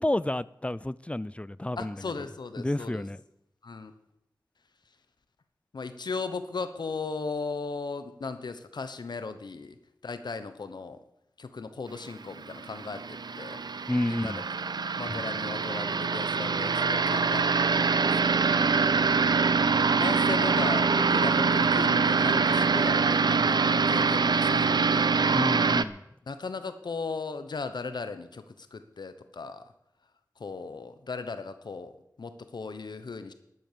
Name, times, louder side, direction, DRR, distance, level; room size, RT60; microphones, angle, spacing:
voice 1, 0.0-2.1 2.6-3.2 13.9-14.4 15.0-15.2 25.3-26.0, left 1 dB, 15° left, 0.5 m, -30 dB
voice 2, 1.8-3.0 3.6-3.9 5.7-9.7 10.0-11.0 11.4-13.6 14.0-14.3 14.6-18.5 20.0-25.2 26.3-28.4 28.7-29.6 30.4-31.9 32.2-33.3, left 4 dB, 90° left, 1.0 m, -37 dB
sound 1, 12.3-25.8, right 5 dB, 75° right, 0.5 m, -24 dB
12.5 x 11.0 x 6.8 m
wide cardioid pair, 65°, 7 cm